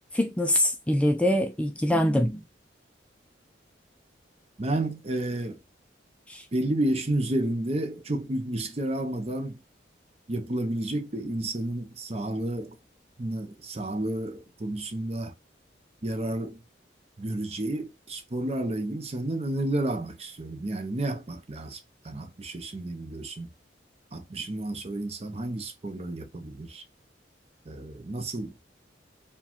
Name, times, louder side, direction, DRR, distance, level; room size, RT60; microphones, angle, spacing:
voice 1, 0.1-2.3 6.3-6.5, left 1 dB, 5° left, 0.3 m, -24 dB
voice 2, 4.6-5.6 6.5-9.6 10.3-12.8 13.2-15.3 16.0-16.6 17.2-21.8 22.0-23.5 24.1-26.8 27.7-28.7, right 1 dB, 35° right, 0.6 m, -31 dB
4.8 x 2.3 x 3.5 m
head